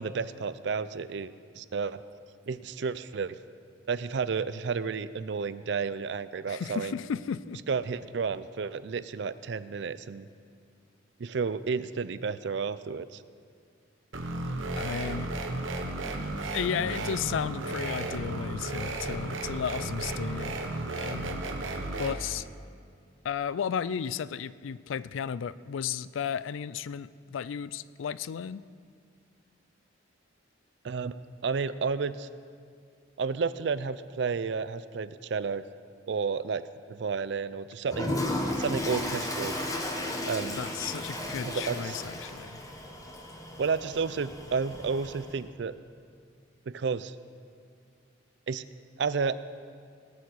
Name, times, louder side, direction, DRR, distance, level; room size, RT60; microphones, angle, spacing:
voice 1, 0.0-2.0 2.5-3.4 3.9-6.9 7.7-10.3 11.2-13.2 30.8-31.2 31.4-32.3 33.2-35.6 36.1-36.6 36.9-38.2 38.6-39.6 40.3-40.6 41.5-42.0 43.6-45.7 46.7-47.1 48.5-48.6 49.0-49.4, right 5 dB, 60° right, 15 dB, 0.4 m, -31 dB
voice 2, 6.5-7.6 14.8-15.3 16.5-20.6 21.0-21.4 22.0-22.4 23.2-28.6 40.6-42.6, left 7 dB, 85° left, 17 dB, 0.4 m, -34 dB
sound 1, 14.1-22.1, right 2 dB, 90° right, 1.1 m, -34 dB
Toilet flush, 37.9-45.4, left 1 dB, 20° left, 1.1 m, -34 dB
18.5 x 7.1 x 6.3 m, 2.2 s
head